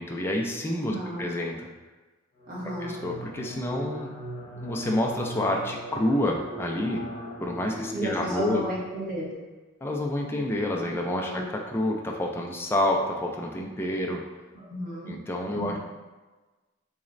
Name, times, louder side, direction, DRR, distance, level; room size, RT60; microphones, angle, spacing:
voice 1, 0.0-1.7 2.8-4.1 4.5-7.0 7.4-8.6 9.8-14.2 15.1-15.8, left 1 dB, 10° left, 0 dB, 0.3 m, -28 dB
voice 2, 0.9-1.2 2.5-2.9 7.9-9.3 11.2-11.4 14.6-15.1 15.5-15.8, right 1 dB, 45° right, -7 dB, 1.3 m, -33 dB
sound 1, 2.4-9.3, equal, 35° left, 0.7 m, -39 dB
4.1 x 3.1 x 2.5 m, 1.2 s
head